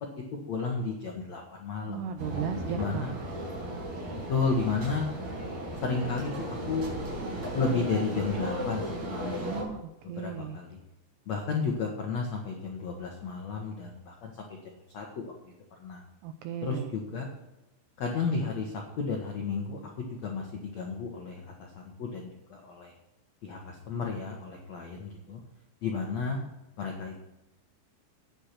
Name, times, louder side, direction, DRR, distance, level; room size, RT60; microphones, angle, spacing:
voice 1, 0.5-2.0 2.7-3.1 4.1-5.1 5.8-6.9 7.5-9.6 10.0-10.8 11.3-14.6 14.9-15.5 15.8-16.0 16.6-17.3 18.0-22.2 22.5-22.9 23.4-25.4 25.8-26.4 26.8-27.2, left 4 dB, 75° left, 1 dB, 1.6 m, -32 dB
voice 2, 1.9-3.1 9.4-10.6 16.2-16.9, right 7 dB, 85° right, 8 dB, 2.4 m, -36 dB
sound 1, 2.2-9.6, right 1 dB, 55° right, 5.9 m, -35 dB
9.9 x 9.8 x 5.9 m, 0.97 s
omnidirectional pair, 5.4 m